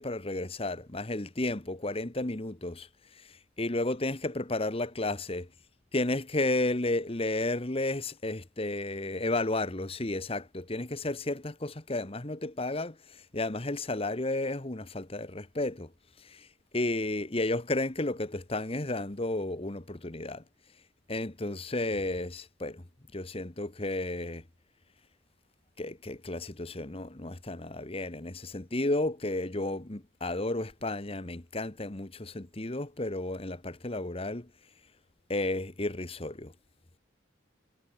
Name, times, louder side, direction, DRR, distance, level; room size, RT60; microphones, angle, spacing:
voice 1, 0.0-5.5 5.9-15.9 16.2-16.5 16.7-20.4 21.1-22.8 23.1-24.4 25.8-34.5 35.3-36.5, left 2 dB, 30° left, 1.2 m, -32 dB
head